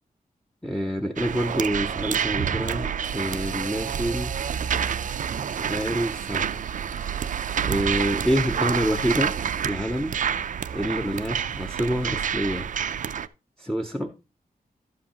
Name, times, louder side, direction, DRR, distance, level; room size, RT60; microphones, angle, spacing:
voice 1, 0.6-4.4 5.5-6.5 7.6-9.4 9.6-10.1 10.7-12.7 13.6-14.1, equal, 5° left, 0.5 m, -27 dB
sound 1, 1.2-13.3, right 8 dB, 55° right, 0.4 m, -28 dB
11.5 x 7.9 x 2.8 m
wide cardioid pair, 175°, 16 cm